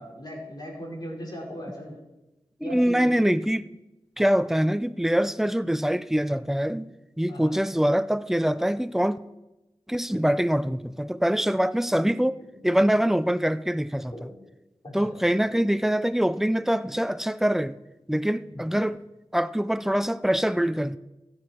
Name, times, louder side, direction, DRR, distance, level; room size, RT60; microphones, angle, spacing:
voice 1, 0.0-1.9 2.6-3.1 4.2-4.3 7.3-7.6 14.1-14.4 14.8-15.1 18.5-18.7, equal, 40° left, 5.0 m, -38 dB
voice 2, 2.6-3.7 4.2-6.9 7.2-9.2 9.9-12.4 12.6-14.1 14.9-17.7 18.1-19.0 19.3-21.0, equal, 5° right, 0.5 m, -24 dB
14.5 x 9.7 x 4.5 m
cardioid pair, 50°, 11 cm